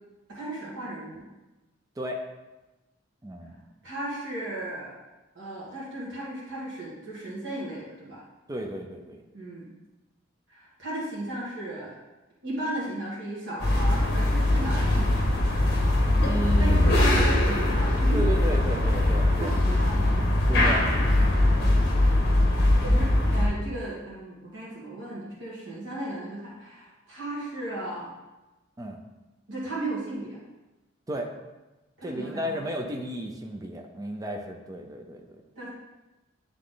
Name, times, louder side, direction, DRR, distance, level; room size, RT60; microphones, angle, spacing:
voice 1, 0.3-1.3 3.8-5.0 5.4-8.2 9.3-9.7 10.5-12.0 12.4-15.1 16.6-18.2 18.8-19.1 19.4-20.1 21.3-21.7 22.8-28.1 29.5-30.4 32.0-32.6 35.6-35.7, right 1 dB, 70° right, -7 dB, 1.9 m, -35 dB
voice 2, 3.2-3.6 8.5-9.2 16.2-16.9 18.1-19.5 20.2-20.8 28.8-29.0 31.1-31.3 32.0-35.4, right 1 dB, 20° right, 2 dB, 0.6 m, -33 dB
sound 1, 13.6-23.5, left 1 dB, 55° left, 1.1 m, -22 dB
9.7 x 3.7 x 3.9 m, 1.1 s
head